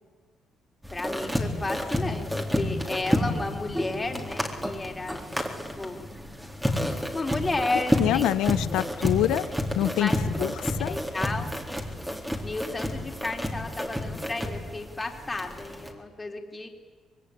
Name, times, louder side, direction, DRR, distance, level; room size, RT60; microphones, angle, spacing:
sound 1, 0.8-15.9, equal, 5° right, 4.1 m, -30 dB
voice 1, 0.9-5.3 5.8-6.1 7.1-8.3 8.7-8.8 10.0-10.2 10.8-11.5 12.4-16.7, left 2 dB, 20° left, 3 dB, 3.9 m, -32 dB
voice 2, 8.0-9.5 9.7-10.9, left 13 dB, 90° left, 15 dB, 0.9 m, -26 dB
24.5 x 22.0 x 9.9 m, 1.5 s
cardioid pair, 90°, 0 cm